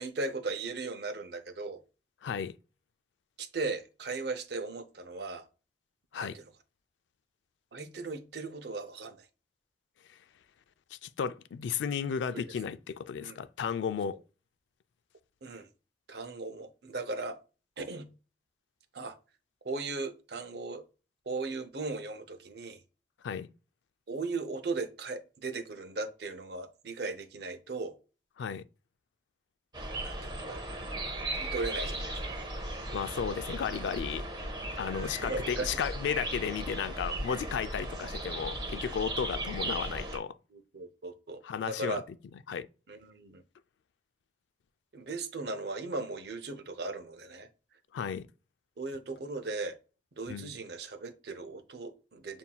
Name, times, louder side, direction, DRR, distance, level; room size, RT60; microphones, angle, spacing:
voice 1, 0.0-1.8 3.4-5.4 6.2-6.4 7.7-9.3 12.3-12.4 13.2-13.4 15.4-15.7 16.1-17.4 17.8-18.1 18.9-19.2 19.6-20.8 21.3-22.8 24.1-28.0 30.0-30.6 31.3-32.1 35.0-35.7 37.1-37.3 40.5-42.0 42.9-43.4 44.9-47.5 48.8-49.8 50.1-52.4, right 3 dB, 65° right, 0.6 m, -37 dB
voice 2, 2.2-2.5 6.1-6.4 10.9-14.2 23.2-23.5 28.4-28.6 32.9-34.3 34.8-40.4 41.4-42.0 42.5-42.7 47.9-48.2 50.3-50.5, left 7 dB, 85° left, 0.3 m, -34 dB
sound 1, 29.7-40.2, right 1 dB, 25° right, 0.7 m, -37 dB
7.1 x 2.6 x 2.3 m
head